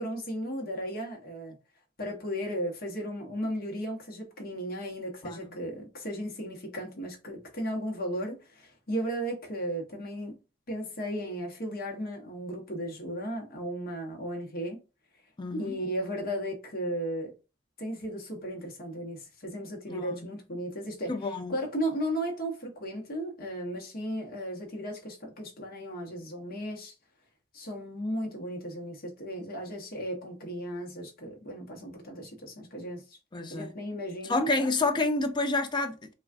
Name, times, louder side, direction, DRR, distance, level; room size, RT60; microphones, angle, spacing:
voice 1, 0.0-1.6 2.0-10.4 10.7-14.8 15.5-17.3 17.8-21.1 21.5-26.9 27.5-33.2 33.5-34.5, equal, 50° left, 0.9 m, -35 dB
voice 2, 15.4-15.8 19.9-20.3 21.1-21.6 33.3-33.7 34.2-36.1, left 3 dB, 25° left, 0.4 m, -29 dB
3.3 x 2.3 x 2.4 m
head